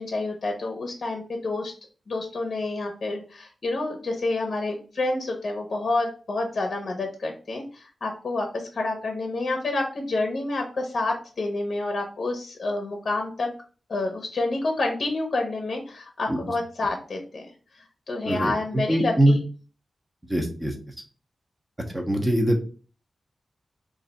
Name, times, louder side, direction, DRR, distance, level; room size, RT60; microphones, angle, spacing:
voice 1, 0.0-1.7 2.1-13.5 13.9-17.4 18.1-19.4, left 2 dB, 50° left, 3 dB, 0.6 m, -28 dB
voice 2, 18.2-19.4 20.3-20.7 21.9-22.6, right 1 dB, 15° right, 2 dB, 0.7 m, -22 dB
3.2 x 2.5 x 3.9 m, 0.38 s
wide cardioid pair, 145°, 0 cm